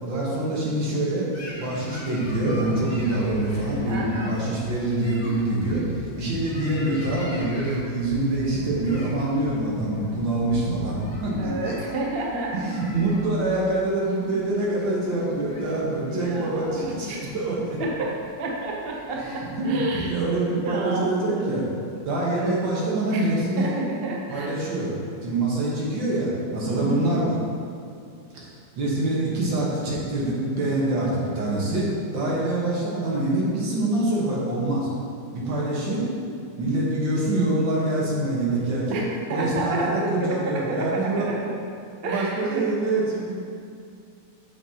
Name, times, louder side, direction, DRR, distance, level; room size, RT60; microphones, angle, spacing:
voice 1, 0.0-1.3 1.6-4.0 4.3-5.8 6.1-11.0 11.2-11.7 12.5-17.8 19.5-21.7 22.1-23.7 24.3-24.9 25.2-27.3 28.3-28.5 28.8-34.9 35.3-36.1 36.6-41.3 42.0-43.3, right 2 dB, 85° right, -5 dB, 2.1 m, -25 dB
sound 1, 1.3-19.8, equal, 50° left, 1.5 m, -45 dB
Bass guitar, 2.2-11.7, left 3 dB, 70° left, 1.3 m, -38 dB
voice 2, 3.8-4.4 11.4-12.7 16.0-17.2 17.8-18.1 18.4-21.1 21.4-21.5 22.3-22.6 23.1-23.3 23.6-24.6 26.7-27.4 38.9-41.6 42.0-42.7, right 2 dB, 45° right, -1 dB, 0.8 m, -30 dB
7.4 x 6.3 x 2.9 m, 2.4 s
omnidirectional pair, 2.0 m